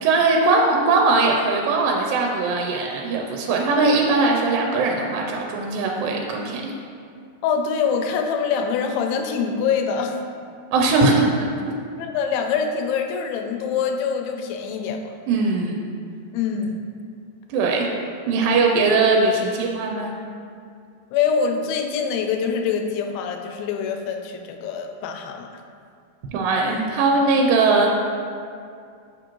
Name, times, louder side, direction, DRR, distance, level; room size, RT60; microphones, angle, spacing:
voice 1, 0.0-6.8 10.7-11.7 15.3-15.8 17.5-17.9 18.3-20.1 26.3-27.9, right 3 dB, 80° right, 0 dB, 2.2 m, -20 dB
voice 2, 7.4-10.2 12.0-15.2 16.3-16.9 21.1-25.5, left 6 dB, 85° left, 4 dB, 2.3 m, -24 dB
6.8 x 5.1 x 3.0 m, 2.3 s
omnidirectional pair, 4.2 m